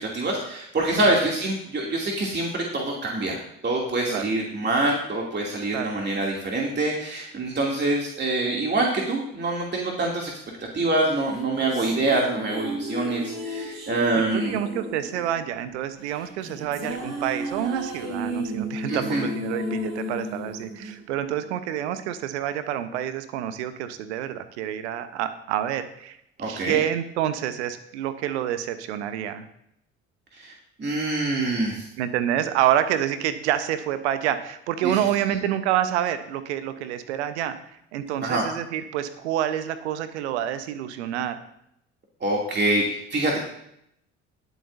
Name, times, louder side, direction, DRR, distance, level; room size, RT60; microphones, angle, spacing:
voice 1, 0.0-10.3 10.7-14.5 18.9-19.2 26.4-26.8 30.4-30.5 30.8-31.8 34.8-34.9 38.2-38.4 42.2-43.4, right 2 dB, 30° right, -2 dB, 2.6 m, -25 dB
sound 1, 11.2-21.6, equal, 55° right, 5.4 m, -34 dB
voice 2, 14.1-29.4 32.0-37.6 37.9-41.4, right 11 dB, 75° right, 11 dB, 1.0 m, -28 dB
20.5 x 8.2 x 2.7 m, 0.76 s
figure-of-eight pair, 50°, 35 cm